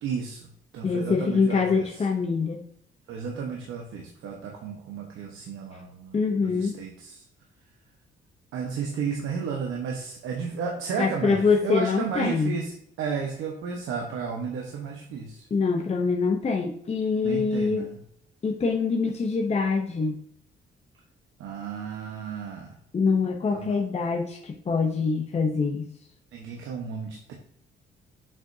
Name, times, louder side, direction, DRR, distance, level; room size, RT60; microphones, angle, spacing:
voice 1, 0.0-1.8 3.1-7.2 8.5-12.7 13.0-15.5 17.2-18.0 21.4-22.8 23.5-23.8 26.3-27.3, right 6 dB, 85° right, 0 dB, 1.2 m, -33 dB
voice 2, 0.8-2.6 5.7-5.8 6.1-6.8 11.0-12.5 15.5-17.8 18.4-20.2 22.9-25.8, left 4 dB, 30° left, 2 dB, 0.8 m, -24 dB
7.4 x 5.2 x 2.7 m, 0.68 s
cardioid pair, 90°, 20 cm